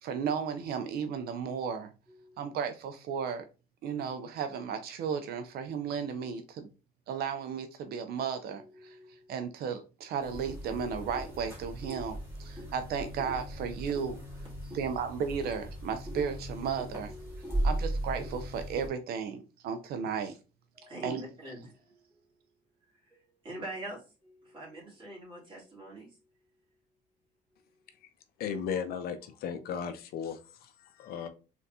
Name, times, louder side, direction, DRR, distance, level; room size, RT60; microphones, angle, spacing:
voice 1, 0.0-1.9 2.4-3.4 3.8-6.7 7.1-9.0 9.3-14.2 14.7-17.1 17.6-20.4 21.0-21.2, right 6 dB, 65° right, 0.5 m, -34 dB
voice 2, 2.1-2.5 8.6-9.5 12.4-12.7 14.6-14.8 16.8-17.9 20.7-22.2 23.1-26.2, right 1 dB, 30° right, 2.4 m, -46 dB
sound 1, 10.2-18.9, right 1 dB, 15° right, 1.7 m, -37 dB
voice 3, 28.4-31.3, left 7 dB, 65° left, 0.6 m, -36 dB
3.9 x 3.4 x 2.7 m
cardioid pair, 110°, 17 cm